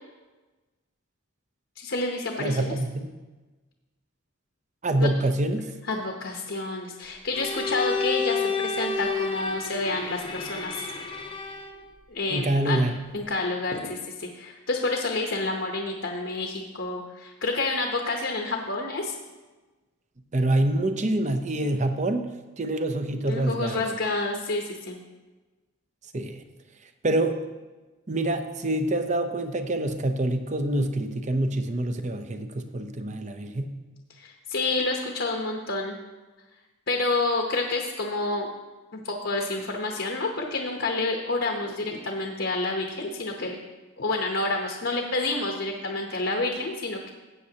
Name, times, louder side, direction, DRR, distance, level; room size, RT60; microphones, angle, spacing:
voice 1, 1.8-2.7 5.0-5.1 5.9-10.9 12.1-12.8 13.1-19.1 23.3-25.0 34.2-36.0 36.9-38.5 38.9-43.6 44.0-47.1, left 2 dB, 60° left, 2 dB, 0.9 m, -29 dB
voice 2, 2.4-3.1 4.8-5.7 12.3-13.0 20.3-23.9 26.1-26.4 27.0-27.4 28.1-33.7, right 1 dB, 35° right, 8 dB, 0.7 m, -26 dB
Bowed string instrument, 7.3-11.8, left 4 dB, 25° left, 0.7 m, -30 dB
15.0 x 8.4 x 2.9 m, 1.2 s
head